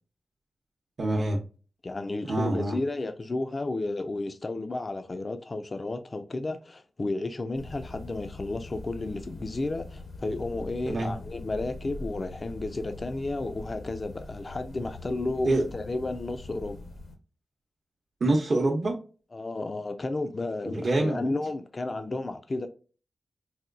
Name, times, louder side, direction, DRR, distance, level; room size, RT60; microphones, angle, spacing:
voice 1, 1.0-1.4 2.3-2.8 10.9-11.1 15.4-15.7 18.2-18.9 20.7-21.2, right 2 dB, 55° right, 0.7 m, -25 dB
voice 2, 1.8-16.8 19.3-22.7, left 2 dB, 40° left, 0.4 m, -32 dB
sound 1, 7.5-17.2, left 2 dB, 80° left, 0.9 m, -43 dB
4.1 x 2.2 x 2.4 m
cardioid pair, 65°, 0 cm